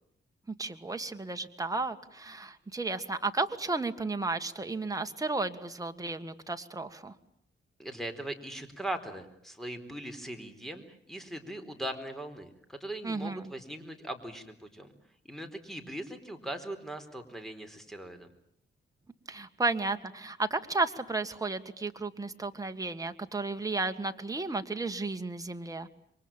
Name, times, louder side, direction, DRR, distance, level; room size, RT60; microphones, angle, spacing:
voice 1, 0.6-7.1 13.0-13.5 19.3-25.9, right 3 dB, 15° right, 6 dB, 1.8 m, -33 dB
voice 2, 7.8-14.9 15.2-18.3, right 1 dB, ahead, 8 dB, 4.3 m, -40 dB
28.0 x 23.5 x 9.0 m, 0.71 s
wide cardioid pair, 100°, 21 cm